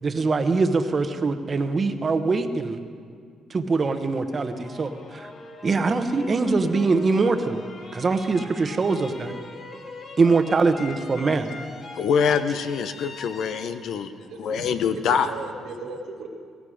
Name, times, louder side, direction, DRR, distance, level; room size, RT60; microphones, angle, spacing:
voice 1, 0.0-2.8 3.5-5.3 5.6-7.6 7.9-9.3 10.2-11.5, right 4 dB, 35° right, 8 dB, 1.1 m, -23 dB
sound 1, 3.8-14.8, left 3 dB, 50° left, 1.7 m, -41 dB
voice 2, 11.9-15.3, left 7 dB, 75° left, 10 dB, 0.8 m, -25 dB
voice 3, 14.1-14.7 15.1-16.3, right 3 dB, 85° right, 1 dB, 2.0 m, -37 dB
18.0 x 15.5 x 5.0 m, 2.1 s
cardioid pair, 90°, 0 cm